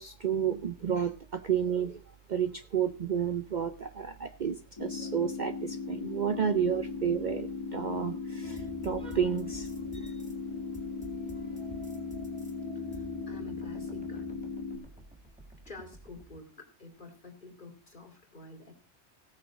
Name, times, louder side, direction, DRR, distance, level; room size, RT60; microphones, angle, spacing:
voice 1, 0.0-2.0 2.3-10.1, right 8 dB, 45° right, 9 dB, 0.7 m, -31 dB
sound 1, 4.8-14.8, left 4 dB, 20° left, 2.2 m, -38 dB
sound 2, 8.4-16.4, equal, 5° right, 2.1 m, -48 dB
voice 2, 12.9-14.3 15.6-18.7, left 3 dB, 40° left, 4 dB, 2.7 m, -49 dB
17.0 x 6.4 x 4.9 m, 0.34 s
omnidirectional pair, 1.2 m